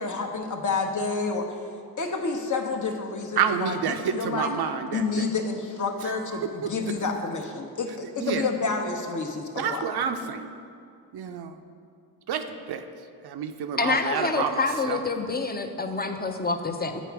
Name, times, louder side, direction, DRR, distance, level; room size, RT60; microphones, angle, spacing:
voice 1, 0.0-1.6 2.0-4.5 4.9-9.8, left 4 dB, 50° left, 2 dB, 0.9 m, -29 dB
voice 2, 3.4-5.3 6.0-6.9 8.0-8.5 9.6-10.6 11.1-11.6 12.3-12.9 13.2-15.0, right 7 dB, 70° right, 7 dB, 0.5 m, -29 dB
voice 3, 13.8-17.0, left 3 dB, 25° left, 6 dB, 0.6 m, -27 dB
8.1 x 4.1 x 4.6 m, 2.3 s
cardioid pair, 55°, 40 cm